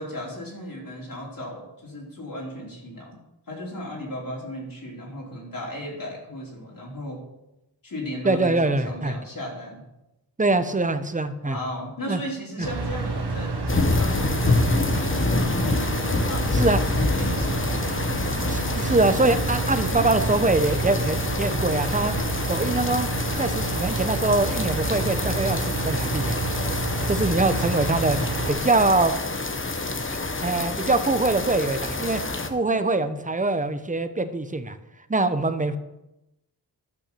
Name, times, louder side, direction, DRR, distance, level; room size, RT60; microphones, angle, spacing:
voice 1, 0.0-3.2 3.5-7.2 7.8-9.8 11.4-17.7 19.8-20.3, equal, 55° left, -3 dB, 3.4 m, -36 dB
voice 2, 8.2-9.2 10.4-11.6 12.1-12.2 12.6-12.7 16.5-16.8 18.5-22.2 22.5-23.1 23.4-26.4 27.1-28.2 28.5-29.1 30.4-32.2 32.5-34.7 35.1-35.8, right 2 dB, 20° right, 10 dB, 0.8 m, -23 dB
sound 1, 12.6-28.5, right 3 dB, 80° right, 1.7 m, -29 dB
sound 2, 13.7-32.5, left 3 dB, 30° left, 1.0 m, -27 dB
12.0 x 6.0 x 6.8 m, 0.92 s
wide cardioid pair, 110°, 40 cm